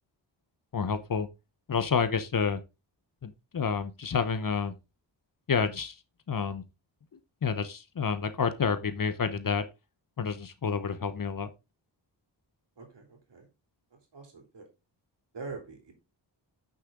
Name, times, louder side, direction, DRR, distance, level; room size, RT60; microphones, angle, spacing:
voice 1, 0.7-1.3 1.7-2.6 3.2-4.8 5.5-6.0 6.3-6.6 7.4-9.6 10.2-11.5, left 6 dB, 50° left, 0.9 m, -29 dB
voice 2, 12.8-13.5 14.1-14.6 15.3-15.9, right 4 dB, 65° right, 3.2 m, -44 dB
9.7 x 6.5 x 3.7 m
wide cardioid pair, 100°, 44 cm